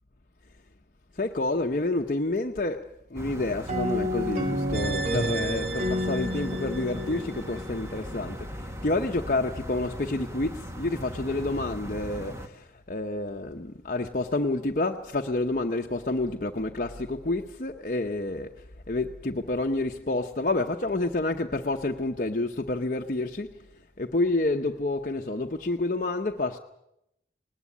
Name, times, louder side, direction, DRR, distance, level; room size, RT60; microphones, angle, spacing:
voice 1, 1.2-8.5 8.8-18.5 18.9-23.5 24.0-26.6, left 2 dB, 50° left, 0.9 m, -29 dB
sound 1, 3.2-12.5, equal, 15° right, 1.3 m, -39 dB
sound 2, 3.7-8.3, left 1 dB, 40° right, 1.5 m, -31 dB
sound 3, 4.7-8.0 8.3-8.4, right 2 dB, 70° right, 1.6 m, -36 dB
20.0 x 19.5 x 8.4 m
head